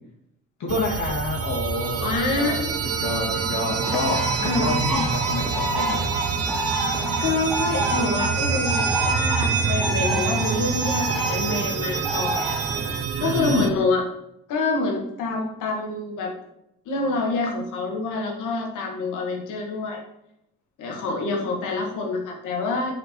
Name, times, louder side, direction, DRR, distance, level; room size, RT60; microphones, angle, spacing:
voice 1, 0.6-2.6 2.8-6.0 13.2-13.7, left 3 dB, 65° left, -2 dB, 2.4 m, -28 dB
sound 1, 0.7-13.7, right 6 dB, 50° right, 0.9 m, -26 dB
voice 2, 2.0-2.8 4.4-4.7 7.2-12.4 13.2-14.0 14.5-16.3 16.9-20.0 20.8-22.9, left 3 dB, 90° left, 2 dB, 1.9 m, -26 dB
Bird, 3.7-13.0, equal, ahead, 1.4 m, -29 dB
8.0 x 5.1 x 4.6 m, 0.79 s
cardioid pair, 90°, 30 cm